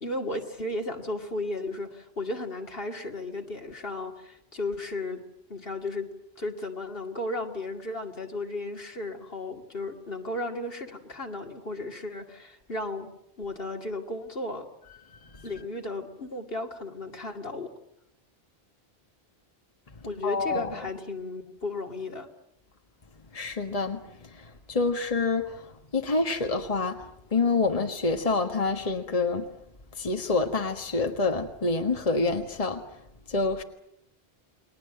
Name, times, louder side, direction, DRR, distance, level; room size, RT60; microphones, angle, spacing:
voice 1, 0.0-5.2 5.5-6.1 6.4-13.1 13.4-14.7 15.4-17.7 20.0-22.3, left 2 dB, 65° left, 3 dB, 2.6 m, -34 dB
voice 2, 15.1-15.5 19.9-20.8 23.3-29.5 29.9-32.8 33.3-33.6, left 3 dB, 35° left, 4 dB, 1.6 m, -28 dB
29.5 x 22.0 x 7.8 m, 0.79 s
omnidirectional pair, 1.0 m